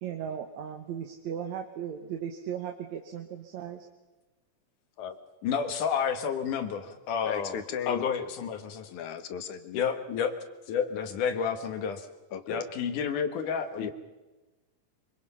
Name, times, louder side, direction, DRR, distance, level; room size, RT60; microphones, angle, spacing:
voice 1, 0.0-3.9, right 8 dB, 70° right, 5 dB, 2.4 m, -37 dB
voice 2, 5.4-7.6 7.9-8.9 9.7-10.3 10.7-12.1 12.5-13.9, left 7 dB, 85° left, 8 dB, 3.2 m, -30 dB
voice 3, 7.3-8.1 8.9-9.8 12.3-12.6 13.8-13.9, left 8 dB, 70° left, 10 dB, 2.7 m, -36 dB
25.5 x 24.5 x 5.7 m, 1.1 s
omnidirectional pair, 3.5 m